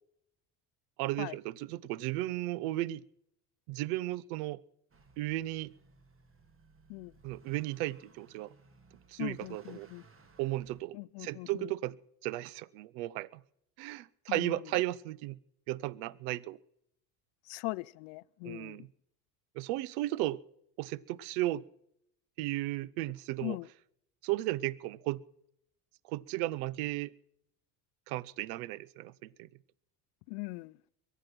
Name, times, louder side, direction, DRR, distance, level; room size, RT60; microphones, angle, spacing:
voice 1, 1.0-3.0 3.7-4.6 5.2-5.7 7.2-8.5 9.1-9.9 10.4-12.0 12.2-13.4 13.8-15.4 15.7-16.6 18.4-18.8 19.6-20.4 20.8-21.6 22.4-23.6 24.2-25.2 26.1-27.1 28.1-29.5, right 16 dB, 70° right, 0.7 m, -35 dB
Motor vehicle (road) / Accelerating revving vroom, 4.9-10.8, right 4 dB, 30° right, 2.0 m, -61 dB
voice 2, 9.2-10.1 10.9-11.7 14.3-14.7 17.5-18.9 23.4-23.7 30.3-30.8, left 26 dB, 65° left, 0.6 m, -40 dB
22.5 x 9.1 x 5.9 m
hypercardioid pair, 70°, 45 cm